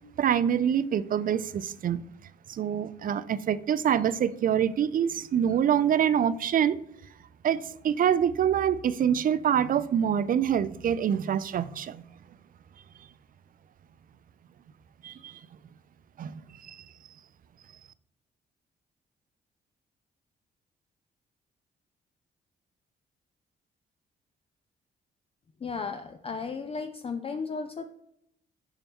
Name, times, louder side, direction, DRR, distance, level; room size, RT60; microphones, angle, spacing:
voice 1, 0.2-2.0 2.5-6.8 7.4-12.0 15.0-15.4 16.2-16.8, right 9 dB, 50° right, 0.4 m, -26 dB
voice 2, 25.6-27.9, left 5 dB, 30° left, 0.5 m, -35 dB
6.9 x 5.6 x 3.6 m
cardioid pair, 80°, 18 cm